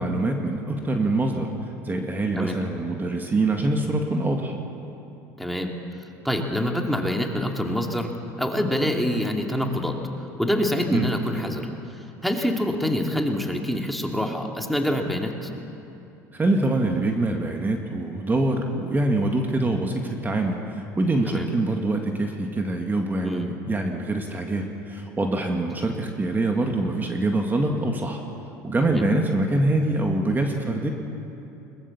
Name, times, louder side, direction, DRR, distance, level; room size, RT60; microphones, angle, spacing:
voice 1, 0.0-1.5 1.8-4.5 10.9-11.1 16.3-28.2 28.6-30.9, right 2 dB, 20° right, 2 dB, 2.1 m, -24 dB
voice 2, 5.4-5.7 6.2-8.1 8.4-10.0 10.4-11.7 12.2-15.5 21.3-21.5 23.2-23.5 28.8-29.0, left 1 dB, ahead, 2 dB, 2.5 m, -26 dB
21.5 x 20.5 x 7.3 m, 2.8 s
hypercardioid pair, 85°, 9 cm